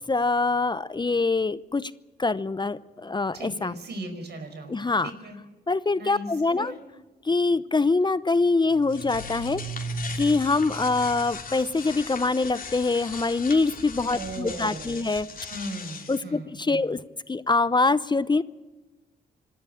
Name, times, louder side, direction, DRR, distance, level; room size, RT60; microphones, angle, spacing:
voice 1, 0.1-1.9 2.2-3.8 4.7-5.1 5.7-6.7 7.2-9.6 10.2-15.3 16.1-17.0 17.3-18.4, left 3 dB, 25° left, 16 dB, 0.7 m, -24 dB
voice 2, 3.3-5.4 6.0-6.3 6.6-6.8 14.1-15.1 15.5-16.9, right 2 dB, 70° right, 7 dB, 5.0 m, -38 dB
sound 1, 8.7-16.2, left 2 dB, 50° left, 3.3 m, -37 dB
26.5 x 13.0 x 8.9 m, 1.2 s
cardioid pair, 60°, 18 cm